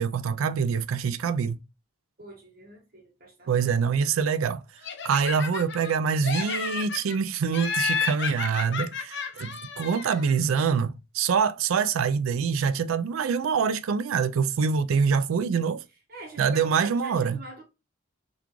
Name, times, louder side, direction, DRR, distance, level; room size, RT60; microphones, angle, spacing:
voice 1, 0.0-1.6 3.5-4.6 5.0-9.5 9.8-15.8 16.4-17.4, right 6 dB, 80° right, 0.4 m, -25 dB
voice 2, 2.2-3.7 16.1-17.6, right 2 dB, 45° right, 0.9 m, -45 dB
Laughter, 4.8-5.9 6.2-7.2 7.5-10.3, left 6 dB, 55° left, 0.5 m, -31 dB
3.6 x 2.4 x 2.9 m
head